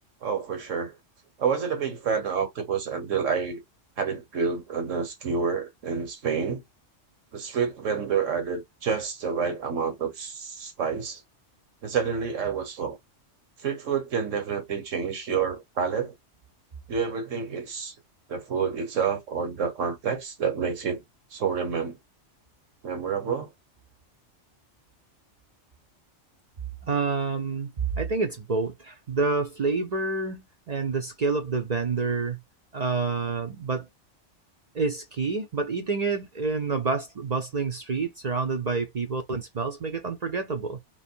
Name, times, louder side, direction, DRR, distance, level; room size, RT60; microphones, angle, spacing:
voice 1, 0.2-1.0 1.4-3.6 4.0-6.6 7.3-11.2 11.8-13.0 13.6-16.1 16.9-17.9 18.3-21.0 21.3-22.0 22.8-23.5, right 6 dB, 85° right, 1.4 m, -28 dB
voice 2, 26.8-32.4 32.7-33.9 34.7-40.8, right 4 dB, 45° right, 0.5 m, -28 dB
3.0 x 2.8 x 4.4 m
omnidirectional pair, 1.3 m